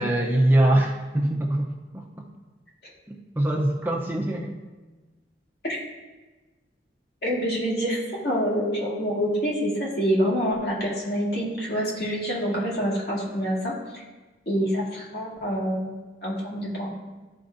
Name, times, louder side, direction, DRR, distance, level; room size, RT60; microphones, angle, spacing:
voice 1, 0.0-2.0 3.1-4.6, right 1 dB, 10° right, -2 dB, 0.6 m, -23 dB
voice 2, 7.2-14.0 14.5-15.9 16.2-16.9, equal, 60° left, -5 dB, 2.0 m, -26 dB
13.0 x 4.4 x 2.6 m, 1.2 s
head